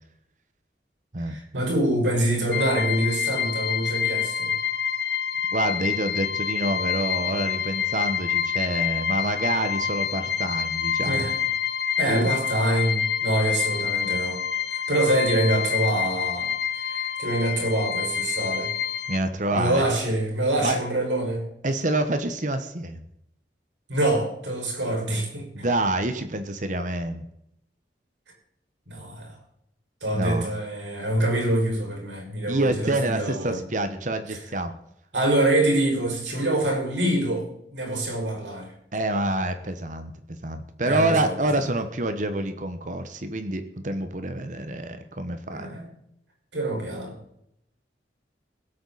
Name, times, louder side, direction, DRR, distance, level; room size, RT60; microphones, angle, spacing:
voice 1, 1.2-4.6 11.1-11.3 12.0-14.4 14.7-18.7 19.5-21.5 23.9-25.7 28.9-29.4 30.0-33.6 35.1-38.7 40.8-41.7 45.5-45.9 46.5-47.1, right 1 dB, 85° right, 1 dB, 5.6 m, -25 dB
sound 1, 2.5-19.2, left 8 dB, 60° left, 0.7 m, -27 dB
voice 2, 5.5-11.3 12.1-12.3 19.1-19.9 20.6-20.8 21.6-23.0 25.5-27.2 30.1-30.5 32.5-34.7 38.9-40.1 40.4-45.7, right 1 dB, 45° right, 9 dB, 1.2 m, -27 dB
22.0 x 8.5 x 4.1 m, 0.77 s
head